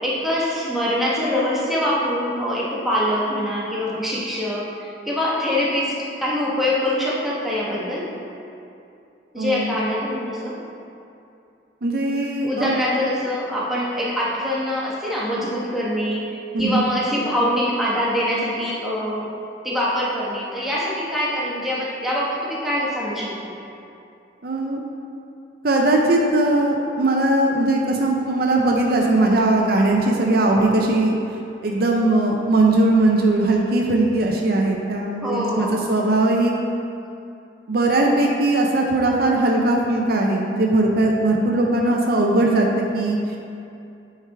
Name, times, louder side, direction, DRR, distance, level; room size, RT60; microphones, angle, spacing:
voice 1, 0.0-8.1 9.3-10.6 12.4-19.3 19.6-23.5 35.2-35.9, left 1 dB, ahead, -7 dB, 1.1 m, -24 dB
voice 2, 9.4-9.7 11.8-12.7 16.5-16.8 24.4-24.8 25.6-31.1 31.6-36.5 37.7-43.2, right 2 dB, 55° right, 0 dB, 0.5 m, -19 dB
9.0 x 4.6 x 3.4 m, 2.6 s
head